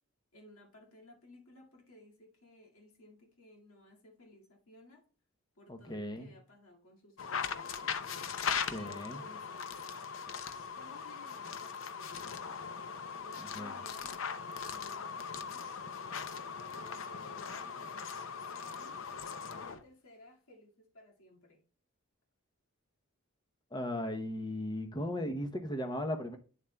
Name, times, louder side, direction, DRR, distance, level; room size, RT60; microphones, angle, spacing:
voice 1, 0.3-5.0 5.6-7.9 8.7-9.8 10.7-12.3 13.2-14.2 14.6-15.7 16.7-19.0 19.5-21.6, left 1 dB, 80° left, 2.0 m, -57 dB
voice 2, 5.7-6.3 8.7-9.2 13.6-13.7 23.7-26.4, left 1 dB, 20° left, 0.7 m, -37 dB
sound 1, 7.2-19.8, left 6 dB, 65° left, 0.6 m, -39 dB
9.0 x 7.2 x 2.2 m
head